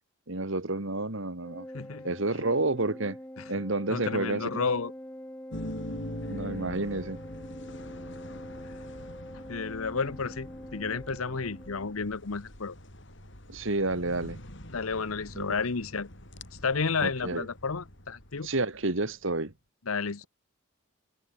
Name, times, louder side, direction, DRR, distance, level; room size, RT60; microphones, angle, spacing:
voice 1, 0.3-1.7 2.0-3.2 3.5-4.6 6.3-7.2 13.5-14.4 15.4-15.6 17.0-17.5 18.4-19.5, right 2 dB, 65° right, 2.0 m, -30 dB
Organ, 1.4-12.2, equal, 10° left, 6.1 m, -45 dB
voice 2, 1.7-2.1 3.4-3.5 3.9-4.9 9.5-12.8 14.7-16.1 16.6-18.5 19.9-20.3, left 4 dB, 80° left, 1.0 m, -31 dB
sound 1, 5.5-19.2, left 1 dB, 55° left, 6.9 m, -44 dB
head